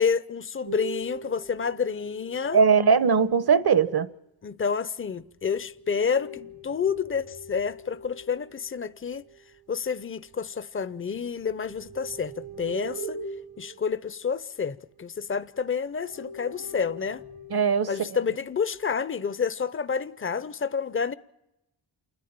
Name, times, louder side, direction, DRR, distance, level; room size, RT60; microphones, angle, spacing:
voice 1, 0.0-2.6 4.4-6.3 6.6-9.2 9.7-13.2 13.6-17.2 17.9-21.1, left 6 dB, 25° left, 0.7 m, -29 dB
sound 1, 0.6-3.9 5.5-10.6 11.0-15.5 15.9-17.7 18.4-18.9, right 3 dB, 85° right, 3.0 m, -43 dB
voice 2, 2.5-4.1 17.5-17.9, right 6 dB, 55° right, 1.1 m, -20 dB
28.0 x 10.5 x 8.9 m
cardioid pair, 65°, 46 cm